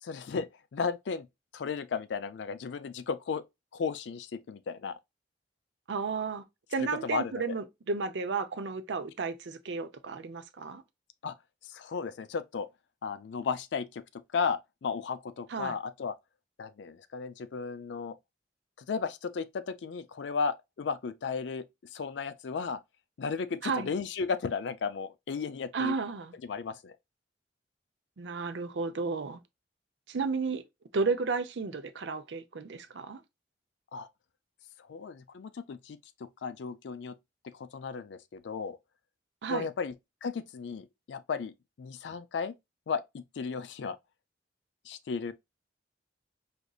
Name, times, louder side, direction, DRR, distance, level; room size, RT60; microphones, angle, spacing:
voice 1, 0.0-1.3 1.5-3.4 3.7-5.0 6.8-7.4 11.2-11.3 11.6-12.7 13.0-14.0 14.3-16.1 16.6-18.2 18.8-21.6 21.9-22.8 23.2-26.0 26.4-27.0 33.9-34.1 34.9-36.0 36.4-37.2 37.4-38.8 39.5-39.9 40.2-42.5 42.9-44.0 44.9-45.3, left 5 dB, 80° left, 0.4 m, -34 dB
voice 2, 5.9-6.4 6.7-10.8 15.5-15.7 23.6-23.9 25.7-26.3 28.2-29.4 30.1-30.6 30.9-33.2 39.4-39.7, right 4 dB, 80° right, 0.5 m, -33 dB
4.9 x 2.6 x 2.3 m
head